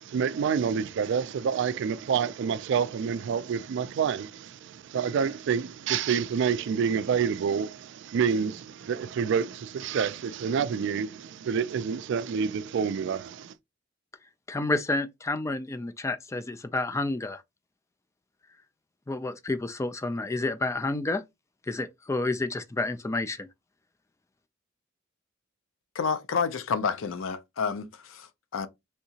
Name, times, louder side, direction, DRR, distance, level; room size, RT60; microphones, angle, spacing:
voice 1, 0.0-13.5, right 7 dB, 65° right, 0.3 m, -28 dB
voice 2, 14.5-17.4 19.1-21.2 21.7-23.5, left 2 dB, 15° left, 0.3 m, -30 dB
voice 3, 25.9-28.7, left 5 dB, 90° left, 0.5 m, -30 dB
3.3 x 2.8 x 2.7 m
head